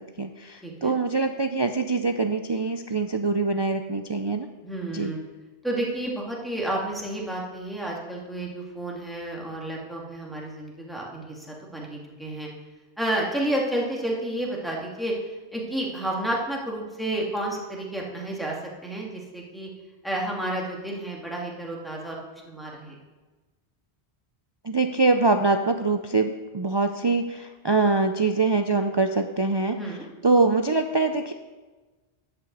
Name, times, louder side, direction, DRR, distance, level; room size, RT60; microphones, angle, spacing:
voice 1, 0.0-4.5 4.9-5.1 24.6-30.0 30.2-31.3, right 3 dB, 45° right, 6 dB, 0.3 m, -24 dB
voice 2, 0.6-0.9 4.6-5.2 5.6-12.5 13.0-15.1 15.5-18.6 18.8-19.7 20.0-22.9 29.7-30.0, right 1 dB, ahead, -3 dB, 2.1 m, -31 dB
11.0 x 5.6 x 8.1 m, 1.3 s
omnidirectional pair, 1.1 m